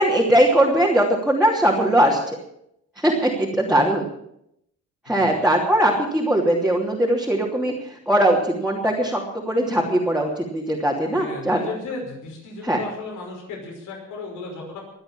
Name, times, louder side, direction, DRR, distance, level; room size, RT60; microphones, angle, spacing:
voice 1, 0.0-2.2 3.0-4.1 5.0-9.2 9.5-11.6 12.6-12.8, right 1 dB, 5° right, -3 dB, 3.0 m, -20 dB
voice 2, 11.2-14.9, left 3 dB, 80° left, -2 dB, 5.7 m, -35 dB
23.0 x 7.9 x 7.2 m, 0.76 s
cardioid pair, 90°, 30 cm